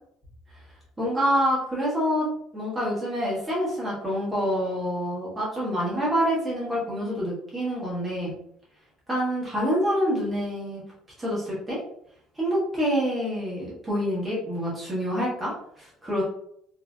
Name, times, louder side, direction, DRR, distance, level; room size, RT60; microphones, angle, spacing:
voice 1, 1.0-2.3 2.5-8.3 9.1-10.8 11.2-11.8 12.4-16.2, equal, 10° right, -7 dB, 1.2 m, -27 dB
3.1 x 2.7 x 2.4 m, 0.69 s
cardioid pair, 175°, 0 cm